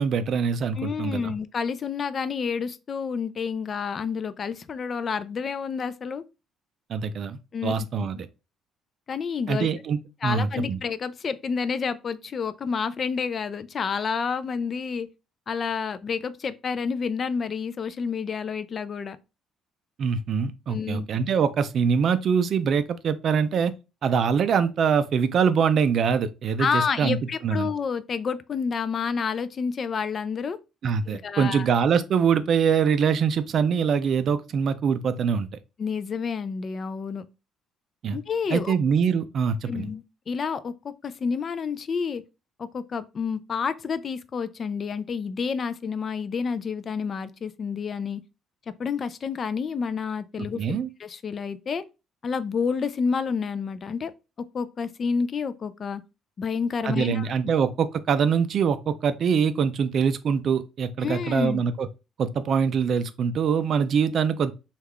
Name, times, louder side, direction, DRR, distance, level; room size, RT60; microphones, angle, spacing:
voice 1, 0.0-1.3 6.9-8.3 9.5-10.8 20.0-23.7 24.0-27.2 27.4-27.7 30.8-35.5 38.0-38.2 38.5-39.9 50.5-50.9 56.8-61.9 62.2-64.5, right 6 dB, 50° right, 0.4 m, -24 dB
voice 2, 0.8-6.2 7.5-8.1 9.1-9.7 10.2-15.1 15.5-19.2 20.7-21.1 26.6-30.6 31.1-31.7 35.8-37.2 38.1-38.7 39.7-42.2 42.6-48.2 48.8-51.8 52.2-54.1 54.5-56.0 56.4-57.3 61.0-61.6, left 5 dB, 35° left, 0.3 m, -29 dB
3.3 x 2.3 x 3.4 m
cardioid pair, 130°, 0 cm